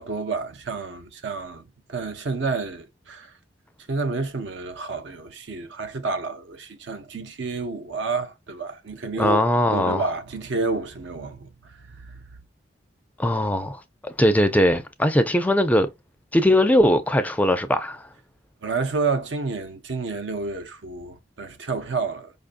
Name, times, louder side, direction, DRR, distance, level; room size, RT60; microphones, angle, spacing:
voice 1, 0.0-3.3 3.9-9.4 9.7-12.2 18.6-22.3, right 4 dB, 70° right, 0.6 m, -29 dB
voice 2, 9.2-10.0 13.2-15.9 16.3-18.0, left 1 dB, 10° left, 0.4 m, -20 dB
5.1 x 2.5 x 2.4 m
head